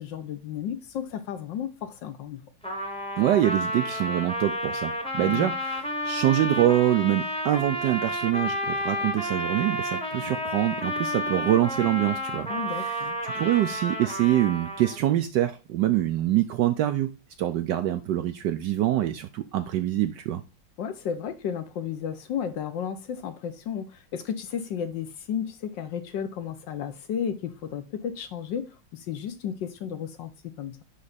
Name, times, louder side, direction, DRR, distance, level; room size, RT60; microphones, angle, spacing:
voice 1, 0.0-2.4 5.2-5.5 12.5-13.2 20.8-30.8, left 8 dB, 65° left, 1.4 m, -33 dB
Trumpet, 2.6-15.1, equal, 5° left, 0.8 m, -31 dB
voice 2, 3.2-12.5 12.8-13.0 13.2-20.4, right 13 dB, 75° right, 1.0 m, -25 dB
9.6 x 3.3 x 4.0 m
omnidirectional pair, 2.3 m